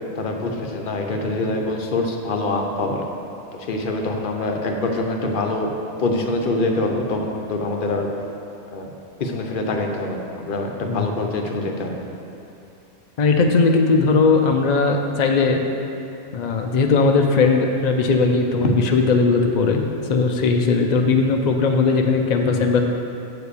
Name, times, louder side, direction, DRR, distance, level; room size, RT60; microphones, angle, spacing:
voice 1, 0.1-3.0 3.7-5.7 6.0-8.1 8.7-8.9 9.2-12.0, left 2 dB, 50° left, 2 dB, 0.7 m, -24 dB
voice 2, 10.8-11.2 13.2-15.6 16.3-19.8 20.1-22.8, left 4 dB, 80° left, 3 dB, 0.3 m, -18 dB
7.4 x 4.8 x 6.7 m, 2.8 s
omnidirectional pair, 1.4 m